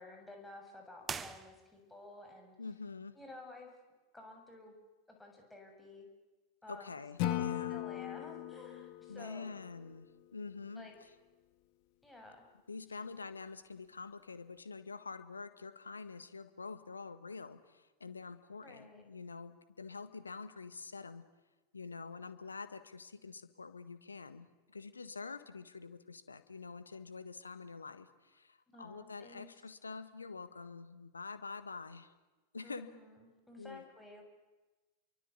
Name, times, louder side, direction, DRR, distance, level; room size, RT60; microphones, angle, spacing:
voice 1, 0.0-2.6 3.2-3.7 4.1-4.8 5.1-6.1 6.6-7.4 7.7-9.6 10.8-10.9 12.0-12.4 18.6-19.0 28.7-29.5 32.6-34.2, left 2 dB, 5° left, 2 dB, 7.1 m, -53 dB
sound 1, 1.0-2.1, right 6 dB, 20° right, 1.3 m, -43 dB
voice 2, 2.6-3.2 6.7-7.8 9.1-10.1 10.3-10.9 12.7-21.2 21.7-32.1 32.5-32.9 33.6-33.8, left 4 dB, 75° left, 13 dB, 1.6 m, -46 dB
Acoustic guitar / Strum, 7.2-10.3, left 13 dB, 45° left, 1.9 m, -39 dB
29.0 x 23.5 x 8.5 m, 1.2 s
figure-of-eight pair, 90°, 0 cm